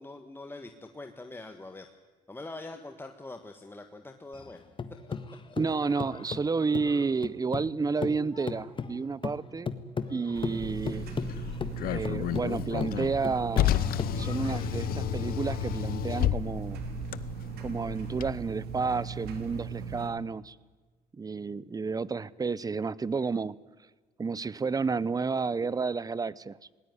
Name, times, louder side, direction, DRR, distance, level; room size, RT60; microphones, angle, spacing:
voice 1, 0.0-1.9 2.3-4.6, left 2 dB, 15° left, 6 dB, 1.6 m, -43 dB
sound 1, 4.3-7.7 8.0-14.7, left 5 dB, 30° left, 1.6 m, -37 dB
voice 2, 5.6-9.7 10.1-11.1 11.9-16.8 17.6-20.5 21.2-23.6 24.2-26.6, right 4 dB, 25° right, 21 dB, 0.8 m, -31 dB
sound 2, 10.3-20.1, right 6 dB, 75° right, 3.4 m, -38 dB
Car, 10.6-18.3, left 13 dB, 70° left, 0.8 m, -32 dB
19.5 x 19.0 x 9.7 m, 1.4 s
cardioid pair, 95°, 16 cm